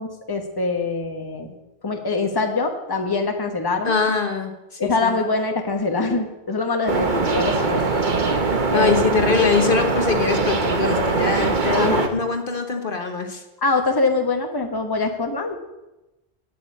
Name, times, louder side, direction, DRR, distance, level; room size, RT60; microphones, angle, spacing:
voice 1, 0.0-1.5 1.8-4.0 4.8-7.9 8.7-9.1 11.7-12.1 13.6-15.6, left 3 dB, 20° left, 5 dB, 1.2 m, -24 dB
voice 2, 3.8-4.5 4.8-5.2 8.7-13.4, left 5 dB, 55° left, 5 dB, 1.3 m, -23 dB
sound 1, 6.9-12.1, right 3 dB, 50° right, 1.3 m, -22 dB
9.3 x 8.5 x 8.4 m, 0.98 s
omnidirectional pair, 1.1 m